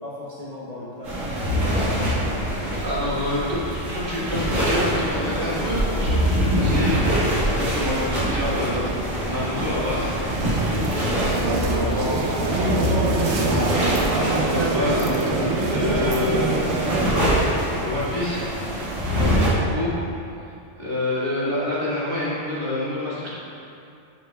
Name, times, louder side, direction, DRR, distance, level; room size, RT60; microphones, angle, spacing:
voice 1, 0.0-2.9 6.5-6.9 10.4-11.8 12.6-13.4, left 1 dB, 40° left, -7 dB, 0.7 m, -37 dB
sound 1, 1.0-19.5, equal, 85° right, 2.1 m, -24 dB
voice 2, 2.8-10.1 10.6-12.3 14.1-15.1 15.7-16.7 17.2-18.5 19.1-19.9 20.4-23.4, left 1 dB, 45° right, -8 dB, 1.8 m, -28 dB
sound 2, 10.3-17.1, right 3 dB, 65° right, 0.9 m, -25 dB
7.8 x 6.6 x 2.3 m, 2.6 s
omnidirectional pair, 1.3 m